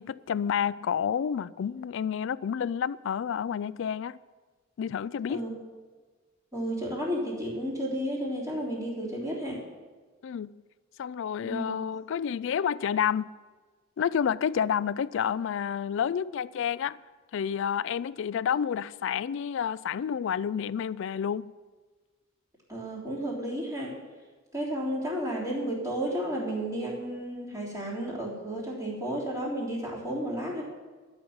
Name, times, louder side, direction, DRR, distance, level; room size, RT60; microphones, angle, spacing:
voice 1, 0.0-4.2 4.8-5.5 10.2-10.5 11.0-13.3 14.0-17.0 17.3-21.5, left 8 dB, 65° left, 0.3 m, -29 dB
voice 2, 6.5-9.6 11.4-11.7 22.7-23.9 24.5-30.6, equal, 15° right, 3.4 m, -32 dB
12.5 x 6.1 x 8.7 m
head